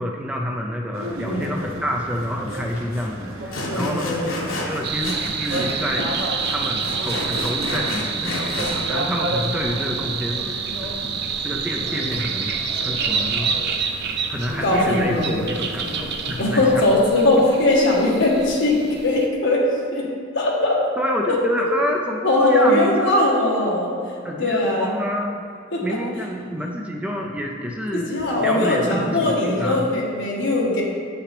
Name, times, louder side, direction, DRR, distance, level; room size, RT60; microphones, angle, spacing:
voice 1, 0.0-4.1 4.6-6.1 6.5-10.6 11.4-12.5 12.8-13.5 14.3-16.8 17.3-17.9 21.0-23.2 24.2-25.5 25.8-29.9, equal, 5° right, 0 dB, 0.5 m, -28 dB
sound 1, 0.9-16.8, equal, 80° right, 1.0 m, -34 dB
Sawing, 2.5-2.6 2.9-3.1 3.5-5.7 6.0-8.8, left 2 dB, 80° left, 1.2 m, -30 dB
voice 2, 3.7-4.3 14.6-15.5 16.4-19.6 19.9-20.1 20.3-20.8 21.3-21.7 22.2-23.9 24.4-24.9 25.7-25.8 28.1-30.8, left 2 dB, 65° left, -3 dB, 1.4 m, -20 dB
sound 2, 4.8-19.3, right 6 dB, 55° right, 0.6 m, -28 dB
8.5 x 5.9 x 3.3 m, 2.3 s
head